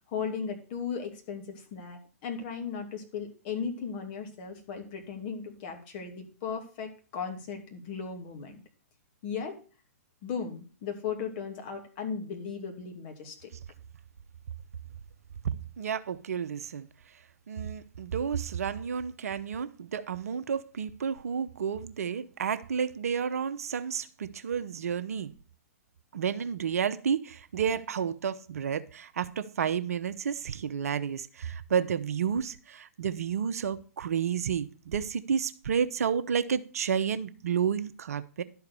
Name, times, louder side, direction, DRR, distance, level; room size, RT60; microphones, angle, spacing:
voice 1, 0.1-8.6 9.2-9.6 10.2-13.5, left 6 dB, 45° left, 4 dB, 2.6 m, -36 dB
voice 2, 15.8-16.9 17.5-25.3 26.1-38.4, right 7 dB, 70° right, 13 dB, 0.7 m, -31 dB
11.5 x 4.7 x 6.8 m, 0.37 s
hypercardioid pair, 120°, 8 cm